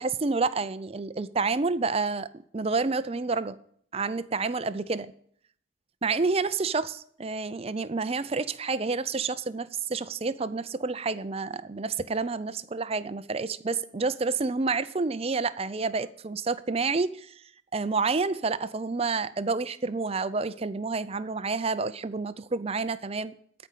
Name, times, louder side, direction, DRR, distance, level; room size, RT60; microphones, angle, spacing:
voice 1, 0.0-2.3 2.5-3.5 3.9-5.1 6.0-17.4 17.7-23.4, right 4 dB, 30° right, 0.5 m, -29 dB
14.5 x 5.2 x 8.2 m
head